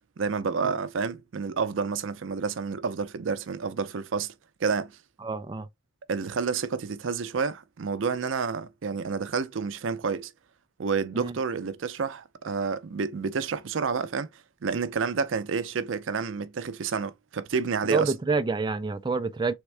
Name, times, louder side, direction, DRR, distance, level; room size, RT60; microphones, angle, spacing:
voice 1, 0.2-4.3 4.6-5.0 6.1-10.3 10.8-14.3 14.6-18.1, right 5 dB, 80° right, 0.5 m, -29 dB
voice 2, 5.2-5.7 11.1-11.4 17.9-19.5, right 4 dB, 25° right, 0.3 m, -27 dB
3.6 x 3.4 x 3.2 m
head